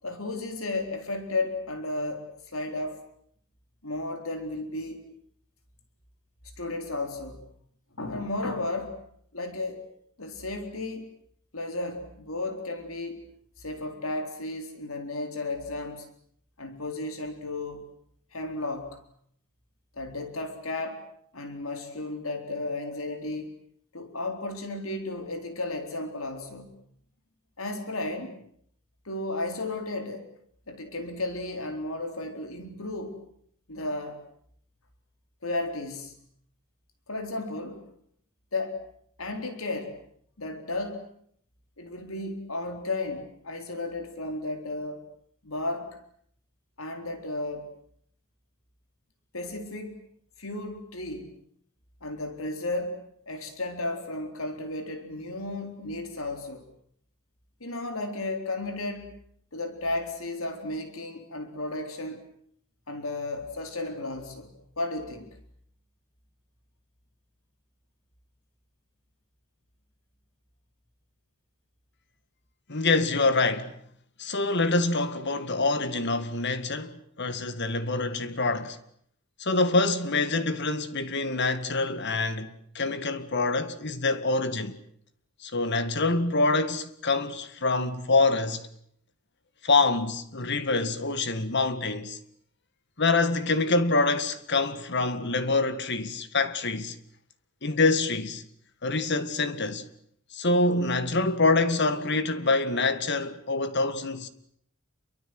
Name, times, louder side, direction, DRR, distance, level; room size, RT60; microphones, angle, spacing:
voice 1, 0.0-2.3 2.5-3.0 3.8-5.1 6.6-7.5 7.9-9.0 9.3-9.8 10.2-11.1 11.5-13.3 13.6-16.1 16.6-17.8 18.3-19.0 20.0-21.0 21.3-23.6 23.9-26.8 27.6-28.3 29.1-30.3 30.7-33.2 33.7-34.2 35.4-36.2 37.1-37.8 38.5-38.8 39.2-39.9 40.4-41.0 41.8-45.0 45.4-46.0 46.8-47.7 49.3-50.0 50.4-51.3 52.0-56.7 57.6-59.1 59.5-62.2 62.9-65.3, left 2 dB, 80° left, 4.1 m, -33 dB
voice 2, 72.7-73.7 74.2-78.8 79.4-84.8 85.4-88.7 89.6-92.2 93.0-97.0 97.6-98.4 98.8-99.9 100.3-104.3, left 3 dB, 55° left, 2.1 m, -26 dB
28.5 x 23.5 x 7.9 m
head